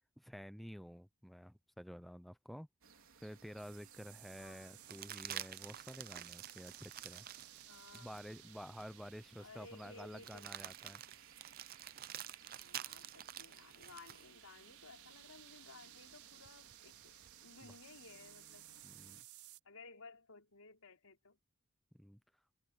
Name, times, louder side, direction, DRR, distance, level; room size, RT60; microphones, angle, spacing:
voice 1, 0.2-2.7 3.2-7.3 7.9-11.0 17.6-17.7 18.8-19.2 21.9-22.2, equal, ahead, 0.5 m, -51 dB
sound 1, 2.8-19.2, right 6 dB, 65° right, 4.2 m, -64 dB
sound 2, 3.6-19.6, right 13 dB, 85° right, 5.0 m, -60 dB
voice 2, 4.4-4.8 7.7-8.4 9.4-10.5 12.5-17.1 17.4-18.7 19.6-21.4, left 3 dB, 75° left, 5.1 m, -58 dB
sound 3, 4.8-8.3 8.8-8.9 10.2-14.3 16.4-17.3, right 11 dB, 45° right, 0.6 m, -49 dB
head